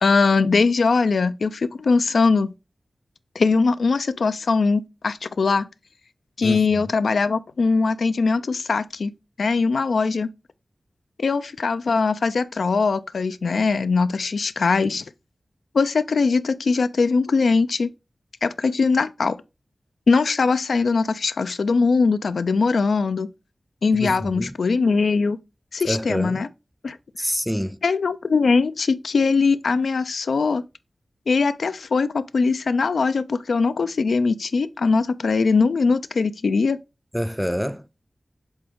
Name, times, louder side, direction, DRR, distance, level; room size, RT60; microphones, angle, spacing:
voice 1, 0.0-2.5 3.4-5.7 6.4-9.1 9.4-10.3 11.2-15.0 15.7-17.9 18.4-19.4 20.1-23.3 23.8-25.4 25.7-26.5 26.8-27.0 27.8-30.6 31.3-36.8, left 4 dB, 90° left, 0.4 m, -21 dB
voice 2, 6.4-6.9 23.9-24.6 25.8-26.4 27.2-27.8 37.1-37.9, equal, ahead, 0.4 m, -27 dB
7.9 x 3.5 x 3.6 m
wide cardioid pair, 75°, 0 cm